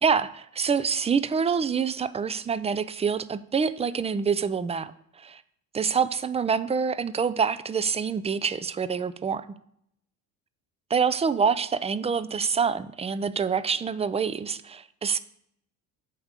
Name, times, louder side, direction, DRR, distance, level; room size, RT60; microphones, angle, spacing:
voice 1, 0.0-4.9 5.2-5.4 5.7-9.4 10.9-15.2, right 6 dB, 15° right, 15 dB, 0.4 m, -26 dB
8.6 x 3.5 x 6.6 m, 0.71 s
hypercardioid pair, 70°, 41 cm